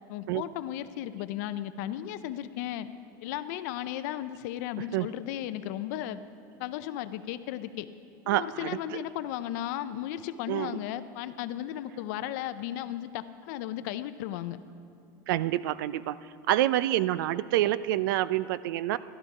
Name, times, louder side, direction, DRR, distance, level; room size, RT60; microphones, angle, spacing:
voice 1, 0.1-2.9 3.2-6.2 6.6-7.9 8.2-14.6, left 12 dB, 55° left, 12 dB, 0.4 m, -35 dB
voice 2, 8.3-8.7 10.5-10.7 15.3-16.2 16.5-19.0, right 14 dB, 75° right, 17 dB, 0.4 m, -27 dB
13.0 x 12.0 x 4.7 m, 2.5 s
supercardioid pair, 175°, 11 cm